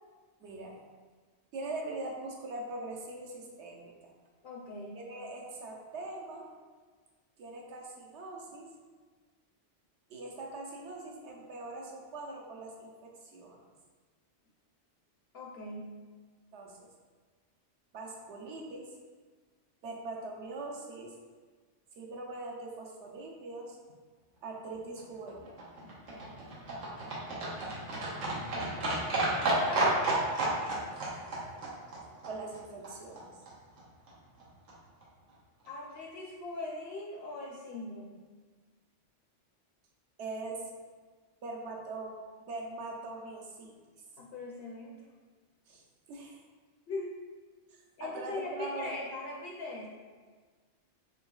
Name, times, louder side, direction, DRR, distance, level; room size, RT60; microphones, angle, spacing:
voice 1, 0.4-0.8 1.5-4.1 4.9-6.5 7.4-8.7 10.1-13.6 16.5-16.9 17.9-18.9 19.8-21.1 22.0-23.8 24.4-25.5 32.2-33.3 40.2-40.7 41.4-43.8 45.7-45.8 46.1-46.4 47.7-49.0, right 2 dB, 70° right, 0 dB, 0.9 m, -42 dB
voice 2, 4.4-5.1 15.3-16.0 29.3-30.3 35.6-38.2 44.2-44.9 46.9-47.2 48.0-49.9, left 2 dB, 65° left, -2 dB, 0.7 m, -40 dB
Livestock farm animals working animals, 25.0-33.2 33.5-33.6 33.8-33.9 34.1-34.2 34.4-34.5 34.7-34.8 35.0-35.1 35.3-35.4 35.7-35.8, right 2 dB, 90° right, 1.2 m, -32 dB
3.9 x 3.8 x 2.2 m, 1.5 s
omnidirectional pair, 1.2 m